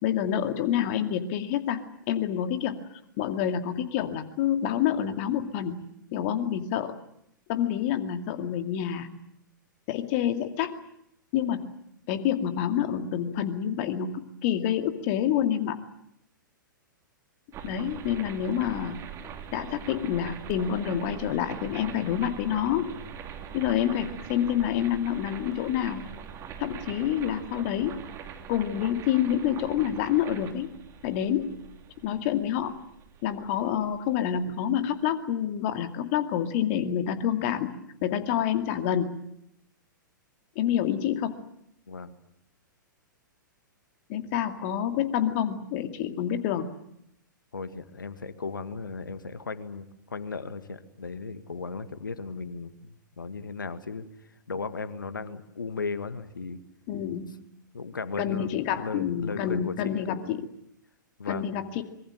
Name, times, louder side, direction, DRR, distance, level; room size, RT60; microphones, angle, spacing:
voice 1, 0.0-2.8 3.2-5.8 6.1-6.9 7.5-9.1 9.9-10.8 11.3-11.7 12.1-15.8 17.6-19.0 19.5-22.9 23.5-26.0 26.6-28.1 28.5-30.7 31.0-31.6 32.0-32.8 33.2-37.8 38.0-39.2 40.6-41.4 44.1-46.7 56.9-57.4 58.2-60.5 61.3-61.8, left 10 dB, 40° left, 8 dB, 2.3 m, -28 dB
sound 1, 17.5-34.4, right 7 dB, 25° right, 3.0 m, -42 dB
voice 2, 41.9-42.2 47.5-54.1 54.5-56.6 57.7-60.0 61.2-61.5, left 4 dB, 75° left, 12 dB, 2.0 m, -36 dB
25.0 x 23.0 x 7.7 m, 0.76 s
figure-of-eight pair, 110°, 11 cm